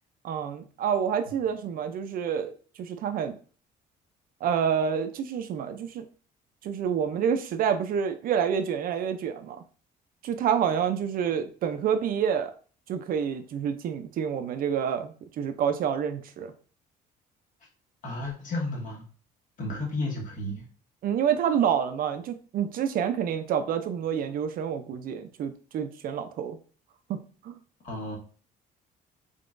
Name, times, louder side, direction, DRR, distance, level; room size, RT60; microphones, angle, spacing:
voice 1, 0.2-2.5 2.8-3.4 4.4-6.0 6.6-9.6 10.2-12.5 12.9-16.5 21.0-26.6 27.1-27.2 27.4-27.5, right 8 dB, 60° right, 8 dB, 0.5 m, -28 dB
voice 2, 18.0-19.0 19.6-20.6 27.8-28.2, left 2 dB, 50° left, 0 dB, 1.5 m, -32 dB
3.7 x 3.5 x 2.5 m, 0.39 s
cardioid pair, 110°, 17 cm